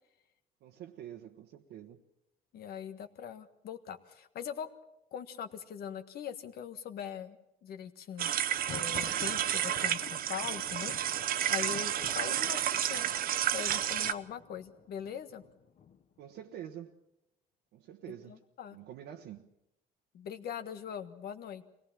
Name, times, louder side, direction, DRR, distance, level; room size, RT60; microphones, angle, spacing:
voice 1, 0.6-2.0 16.2-17.0 17.7-18.4 18.7-19.5, right 10 dB, 80° right, 1.2 m, -47 dB
voice 2, 2.5-4.7 5.1-7.4 7.6-8.3 8.7-13.1 13.5-15.4 18.3-18.8 20.1-21.7, left 8 dB, 65° left, 1.5 m, -41 dB
sound 1, 8.2-14.1, right 11 dB, 60° right, 0.9 m, -31 dB
Thunder, 8.4-16.2, left 7 dB, 50° left, 1.1 m, -50 dB
23.5 x 18.0 x 7.4 m
cardioid pair, 110°, 17 cm